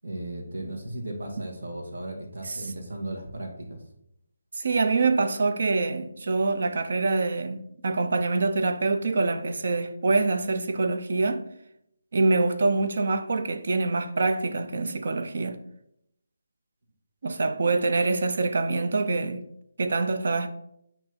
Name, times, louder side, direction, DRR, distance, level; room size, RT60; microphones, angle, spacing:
voice 1, 0.0-3.8, right 1 dB, 70° right, 1.7 m, -36 dB
voice 2, 4.5-11.4 12.1-15.6 17.2-19.4 19.8-20.5, right 3 dB, 55° right, 0.6 m, -25 dB
6.1 x 2.9 x 5.6 m
hypercardioid pair, 170°, 0 cm